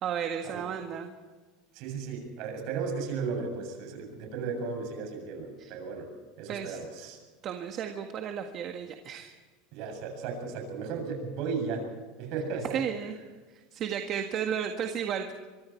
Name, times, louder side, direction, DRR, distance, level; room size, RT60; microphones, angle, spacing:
voice 1, 0.0-1.1 5.6-5.7 6.5-6.8 7.4-9.4 12.7-13.1 13.7-15.3, right 8 dB, 40° right, 4 dB, 1.7 m, -33 dB
voice 2, 1.7-6.1 6.4-7.2 9.7-11.9 12.2-12.8, right 5 dB, 55° right, 3 dB, 7.5 m, -35 dB
25.0 x 24.0 x 4.6 m, 1.3 s
supercardioid pair, 145°, 0 cm